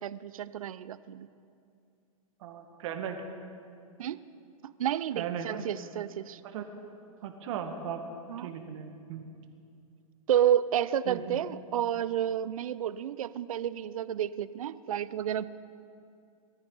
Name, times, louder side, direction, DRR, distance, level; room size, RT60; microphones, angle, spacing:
voice 1, 0.0-1.3 4.0-4.2 4.6-6.4 8.3-8.5 10.3-15.4, right 10 dB, 75° right, 16 dB, 0.6 m, -30 dB
voice 2, 2.4-3.2 5.1-5.6 6.4-6.7 7.2-8.1 8.4-9.2 11.1-11.4, right 8 dB, 60° right, 5 dB, 1.9 m, -37 dB
22.0 x 13.5 x 4.0 m, 2.5 s
hypercardioid pair, 120°, 18 cm